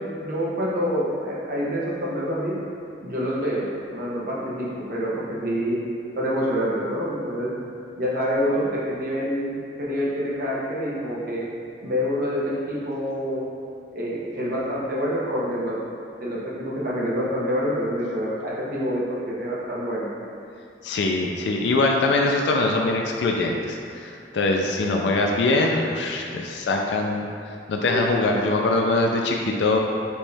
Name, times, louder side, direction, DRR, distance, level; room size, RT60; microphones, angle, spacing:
voice 1, 0.0-2.5 3.0-5.8 6.1-7.5 8.0-11.4 11.8-13.4 13.9-15.8 16.2-20.1 27.9-28.7, equal, 55° right, -7 dB, 0.9 m, -27 dB
voice 2, 20.8-27.3 27.7-29.8, left 2 dB, 80° left, 1 dB, 0.4 m, -23 dB
4.4 x 3.1 x 3.4 m, 2.5 s
head